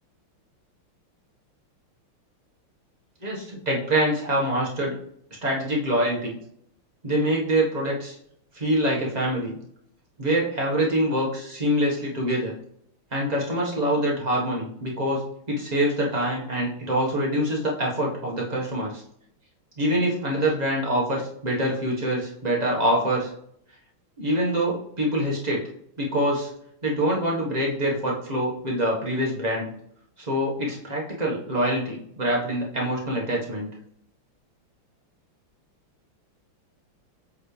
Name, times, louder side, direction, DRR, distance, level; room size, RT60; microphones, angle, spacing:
voice 1, 3.2-4.9 5.4-6.3 7.0-8.1 8.5-9.6 10.2-12.5 13.1-15.2 15.5-19.0 19.8-23.3 24.2-25.6 26.0-26.5 26.8-29.7 30.2-33.7, right 1 dB, 20° right, -3 dB, 1.3 m, -25 dB
7.6 x 4.2 x 3.3 m, 0.69 s
omnidirectional pair, 2.4 m